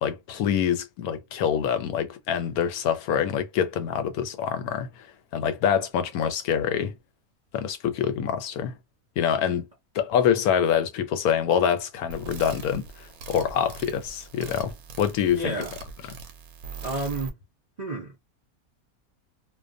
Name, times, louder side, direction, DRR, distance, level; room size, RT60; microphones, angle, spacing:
voice 1, 0.0-5.1 5.3-6.9 7.5-8.8 9.2-9.7 9.9-15.5, left 8 dB, 80° left, 1.0 m, -25 dB
sound 1, 12.1-17.3, right 5 dB, 80° right, 1.1 m, -41 dB
voice 2, 15.3-15.7 16.8-17.3 17.8-18.2, right 2 dB, 60° right, 0.4 m, -30 dB
2.4 x 2.3 x 2.5 m
omnidirectional pair, 1.6 m